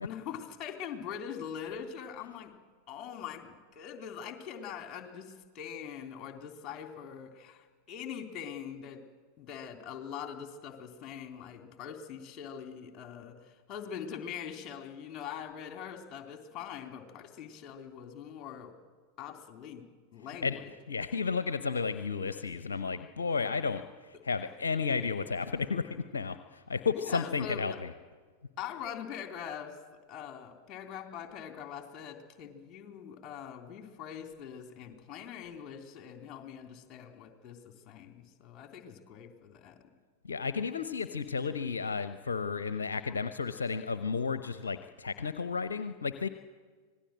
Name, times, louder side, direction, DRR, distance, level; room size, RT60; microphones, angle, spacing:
voice 1, 0.0-2.5 2.9-9.0 9.4-18.7 19.2-19.9 20.1-20.7 26.9-27.8 28.6-29.8 30.1-39.8, left 8 dB, 30° left, 5 dB, 3.2 m, -43 dB
voice 2, 20.9-27.9 40.2-46.3, left 5 dB, 70° left, 11 dB, 0.8 m, -33 dB
25.5 x 19.0 x 7.6 m, 1.5 s
figure-of-eight pair, 90°, 0 cm